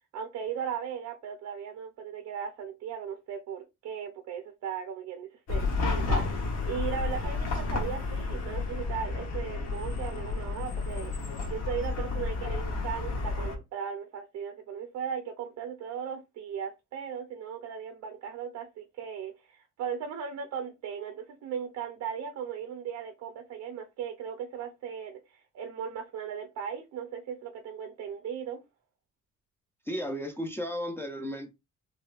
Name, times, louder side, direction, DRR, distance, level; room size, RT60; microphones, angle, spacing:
voice 1, 0.1-11.1 11.5-28.6, right 7 dB, 70° right, 0.6 m, -37 dB
Chatter / Car passing by / Traffic noise roadway noise, 5.5-13.6, left 3 dB, 60° left, 1.0 m, -31 dB
voice 2, 29.9-31.5, equal, 10° left, 0.5 m, -34 dB
4.0 x 2.3 x 2.4 m
cardioid pair, 130°, 30 cm